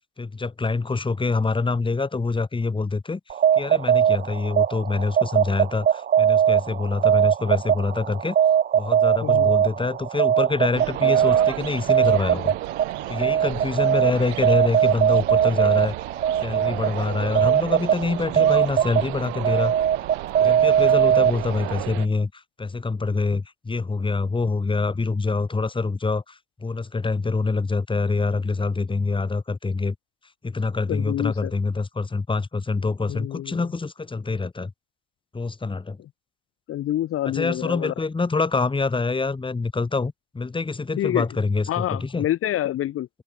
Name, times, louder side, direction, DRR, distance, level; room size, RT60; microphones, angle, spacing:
voice 1, 0.2-3.2 3.6-8.4 8.7-12.5 13.1-16.0 16.4-19.7 20.4-29.9 30.4-34.7 35.3-36.0 37.3-42.3, left 3 dB, 15° left, 4.1 m, -25 dB
sound 1, 3.3-21.8, right 9 dB, 30° right, 0.7 m, -21 dB
voice 2, 9.2-9.5 30.9-31.5 33.1-33.7 36.7-37.9 41.0-41.3 41.7-43.1, left 13 dB, 50° left, 1.6 m, -27 dB
sound 2, 10.7-22.1, right 29 dB, 80° right, 5.0 m, -34 dB
open air
supercardioid pair, 105°, 29 cm